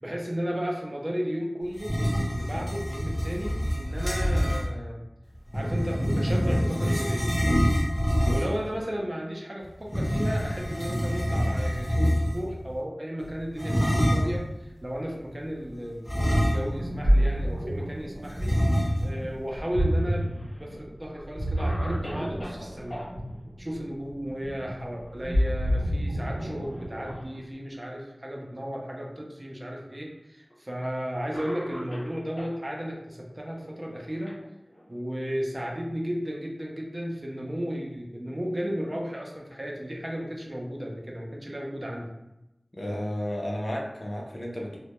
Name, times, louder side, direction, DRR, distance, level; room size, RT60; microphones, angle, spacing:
voice 1, 0.0-5.0 5.5-7.3 8.3-23.0 23.6-34.4 34.9-42.1, equal, 35° right, -1 dB, 0.4 m, -34 dB
sound 1, 1.7-4.7 5.5-8.7 9.8-12.5 13.6-14.4 16.0-17.0 17.3-17.4 18.4-19.2, equal, 5° left, 0.7 m, -26 dB
voice 2, 8.2-8.5 42.7-44.8, left 1 dB, 45° left, -2 dB, 0.5 m, -33 dB
Ocean, 16.7-27.4, equal, 80° right, 0.7 m, -28 dB
Cough, 19.8-20.6 21.1-21.2 21.6-23.1 25.0-25.4 25.7-25.8 26.6-27.3 28.1-28.2 29.3-29.4 30.5-30.7 31.3-32.6 33.5-35.0, equal, 75° left, 1.0 m, -41 dB
2.2 x 2.1 x 2.8 m, 0.93 s
wide cardioid pair, 60°, 0 cm